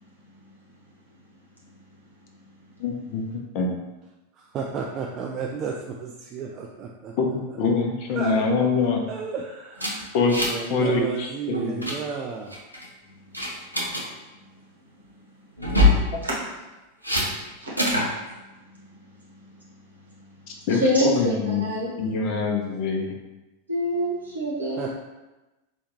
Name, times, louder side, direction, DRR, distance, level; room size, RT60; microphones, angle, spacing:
voice 1, 2.8-3.7 7.2-9.0 10.1-10.4 10.7-11.8 20.7-21.6 22.0-23.1, left 4 dB, 45° left, 2 dB, 0.6 m, -24 dB
voice 2, 4.3-7.1 8.1-8.7 9.1-10.2 10.4-12.6 24.8-24.9, right 5 dB, 35° right, 0 dB, 0.3 m, -32 dB
sound 1, 9.8-10.7 10.9-11.2 11.5-12.0 12.5-12.9 13.3-14.0 15.6-16.0 17.0-17.3 17.8-18.1, left 2 dB, 90° left, 0.6 m, -22 dB
voice 3, 20.7-21.9 23.7-24.9, equal, 80° right, -5 dB, 1.2 m, -25 dB
4.3 x 2.3 x 3.0 m, 1.1 s
figure-of-eight pair, 90°, 0 cm